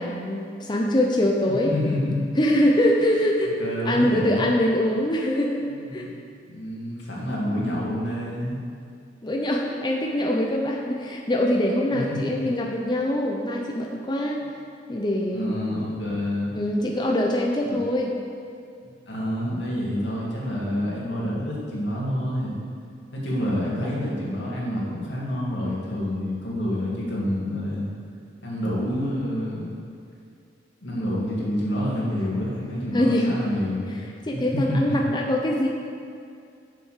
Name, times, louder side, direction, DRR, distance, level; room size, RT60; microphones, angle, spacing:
voice 1, 0.0-1.7 2.4-3.6 3.9-5.6 5.9-6.1 9.2-14.4 14.9-15.5 16.5-18.1 32.9-33.4 34.2-35.7, left 1 dB, 25° left, 0 dB, 0.7 m, -23 dB
voice 2, 1.5-2.3 3.6-4.5 5.7-6.2 6.5-8.6 11.9-12.4 15.3-16.5 17.7-17.8 19.1-22.6 23.1-27.9 28.4-29.7 30.8-34.0 34.3-35.0, left 1 dB, 85° left, -5 dB, 2.5 m, -28 dB
7.2 x 7.0 x 6.6 m, 2.4 s
head